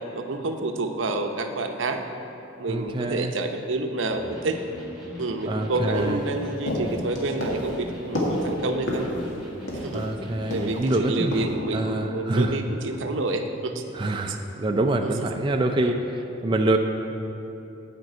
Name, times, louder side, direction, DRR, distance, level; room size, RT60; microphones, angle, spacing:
voice 1, 0.1-2.0 2.6-4.6 5.2-9.1 9.8-10.0 10.5-14.4 15.0-15.3 15.8-15.9, right 2 dB, 75° right, 5 dB, 0.7 m, -29 dB
voice 2, 2.7-3.3 5.5-6.2 9.9-11.3 11.7-12.6 13.9-16.8, right 2 dB, 25° right, 3 dB, 0.4 m, -25 dB
Electric guitar, 4.1-11.4, left 1 dB, 5° right, 1.6 m, -41 dB
sound 1, 5.9-10.1 10.5-10.9 11.3-11.5, left 1 dB, 75° left, 2.0 m, -30 dB
9.1 x 5.2 x 7.9 m, 3.0 s
head